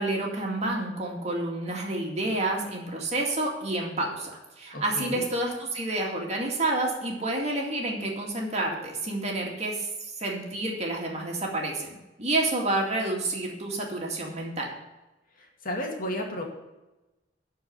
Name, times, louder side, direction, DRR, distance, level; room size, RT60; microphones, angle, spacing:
voice 1, 0.0-9.9 10.2-11.9 12.2-14.7, right 2 dB, 40° right, -1 dB, 2.2 m, -29 dB
voice 2, 4.7-5.2 15.4-16.4, left 1 dB, 50° left, 0 dB, 2.1 m, -33 dB
12.5 x 4.8 x 8.0 m, 1.0 s
head